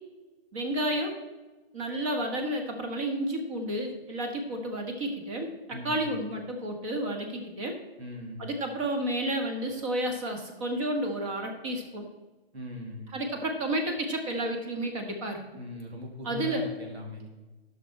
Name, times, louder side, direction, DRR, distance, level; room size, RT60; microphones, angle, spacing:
voice 1, 0.5-1.1 1.7-7.8 8.4-12.1 13.1-15.4 16.2-16.6, right 1 dB, 30° right, 3 dB, 1.5 m, -31 dB
voice 2, 5.7-6.0 8.0-8.4 12.5-13.1 15.6-17.3, left 1 dB, 90° right, 0 dB, 3.0 m, -39 dB
12.0 x 6.2 x 4.3 m, 1.2 s
hypercardioid pair, 155°, 31 cm